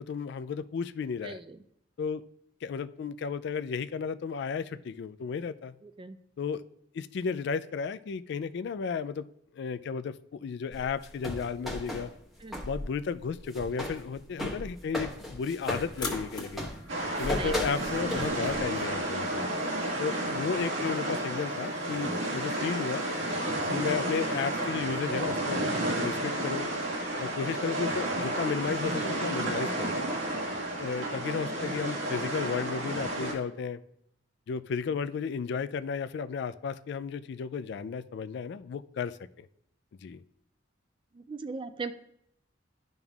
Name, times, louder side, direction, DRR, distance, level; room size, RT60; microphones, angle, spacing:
voice 1, 0.0-1.4 2.0-2.2 2.6-5.7 6.4-6.6 6.9-9.3 9.5-12.1 12.6-16.7 17.2-19.5 20.0-23.1 23.7-26.7 27.2-30.0 30.7-33.8 34.5-39.5 40.0-40.2, left 5 dB, 60° left, 14 dB, 0.3 m, -33 dB
voice 2, 1.2-1.6 5.8-6.2 12.4-12.7 16.8-16.9 17.4-17.8 41.1-41.9, right 4 dB, 25° right, 11 dB, 0.3 m, -39 dB
sound 1, 10.7-12.8 13.2-18.8, left 1 dB, ahead, 1.1 m, -36 dB
sound 2, 15.9-24.7, left 3 dB, 20° left, 1.3 m, -46 dB
sound 3, 16.9-33.3, right 1 dB, 85° right, 1.7 m, -31 dB
12.5 x 5.4 x 2.4 m, 0.76 s
head